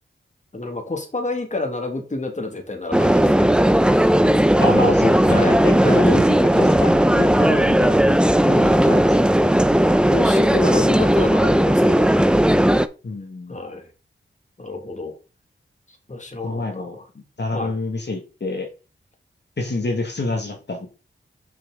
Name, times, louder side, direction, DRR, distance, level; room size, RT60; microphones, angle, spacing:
voice 1, 0.5-3.3 4.9-5.0 5.3-6.2 6.5-6.8 8.4-9.1 10.0-12.1 13.5-13.9 14.6-15.2 16.1-17.0 17.5-17.7, left 2 dB, 35° left, 3 dB, 2.2 m, -28 dB
sound 1, 2.9-12.9, right 1 dB, 5° right, 0.6 m, -16 dB
voice 2, 4.6-6.2 6.6-8.5 8.9-9.5 13.0-13.6 16.4-17.0 17.4-18.7 19.6-20.9, left 2 dB, 55° left, 2 dB, 2.0 m, -28 dB
6.3 x 6.2 x 3.8 m, 0.33 s
cardioid pair, 45°, 21 cm